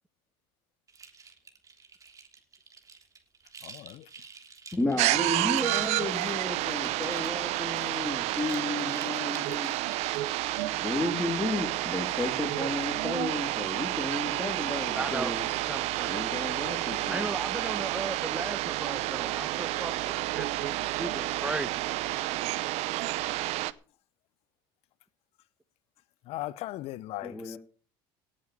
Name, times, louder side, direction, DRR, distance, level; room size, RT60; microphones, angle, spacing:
sound 1, 0.9-10.4, right 5 dB, 30° right, 3.2 m, -50 dB
voice 1, 3.6-4.0 26.3-27.6, left 16 dB, 60° left, 0.8 m, -38 dB
voice 2, 4.7-9.8 10.6-15.4 16.0-17.3 27.2-27.6, left 2 dB, 10° left, 2.8 m, -33 dB
sound 2, 5.0-23.7, right 17 dB, 65° right, 0.9 m, -30 dB
voice 3, 14.9-15.4 15.7-16.2 17.1-21.7, right 2 dB, 10° right, 1.0 m, -36 dB
17.5 x 7.6 x 6.8 m
supercardioid pair, 95°, 12 cm